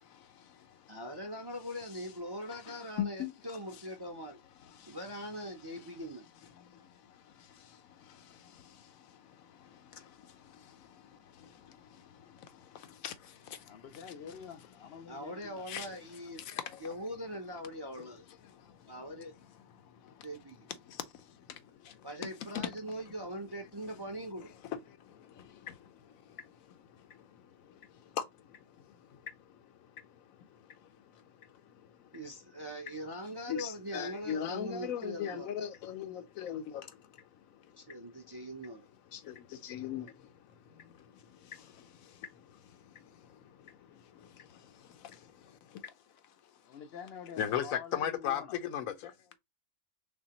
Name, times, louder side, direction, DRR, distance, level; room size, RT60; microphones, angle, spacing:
voice 1, 0.0-1.0 2.7-3.3 4.7-5.0 6.6-13.9 15.7-15.9 16.4-16.8 18.0-18.1 18.5-18.9 19.8-20.3 20.8-22.1 22.5-22.8 24.7-29.7 30.0-32.1 33.5-37.1 37.5-37.8 39.1-45.9 47.4-49.4, left 9 dB, 85° left, 1.1 m, -42 dB
voice 2, 0.9-4.4 4.9-6.2 15.1-16.4 16.8-18.2 18.9-19.3 20.2-20.7 22.0-24.5 32.1-35.6 37.8-38.9, equal, 30° right, 0.4 m, -42 dB
voice 3, 13.7-16.0 46.6-48.6, left 7 dB, 65° left, 0.6 m, -48 dB
4.1 x 3.3 x 2.9 m
omnidirectional pair, 1.4 m